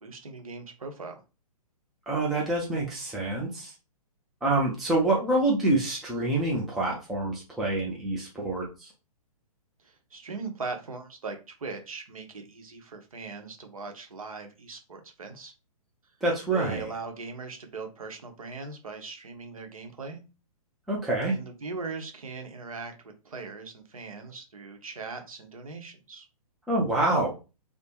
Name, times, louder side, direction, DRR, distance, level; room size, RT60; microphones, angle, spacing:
voice 1, 0.0-1.2 9.8-15.5 16.5-20.2 21.3-26.3, right 4 dB, 65° right, 4 dB, 0.9 m, -40 dB
voice 2, 2.1-3.7 4.4-8.9 16.2-16.9 20.9-21.3 26.7-27.4, right 2 dB, ahead, -4 dB, 0.3 m, -26 dB
3.2 x 2.1 x 2.8 m, 0.30 s
figure-of-eight pair, 120°, 19 cm